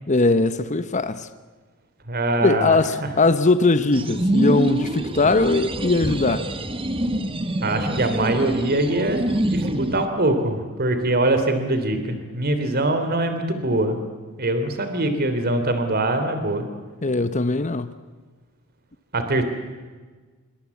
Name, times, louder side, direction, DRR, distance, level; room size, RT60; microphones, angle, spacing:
voice 1, 0.1-1.3 2.4-6.5 17.0-17.9, left 3 dB, 35° left, 1.0 m, -20 dB
voice 2, 2.1-2.8 7.6-9.2 9.5-14.0 14.4-16.7 19.1-19.4, right 2 dB, 45° right, 3.2 m, -23 dB
sound 1, 3.9-10.0, right 1 dB, 25° right, 1.5 m, -25 dB
26.5 x 23.5 x 8.4 m
head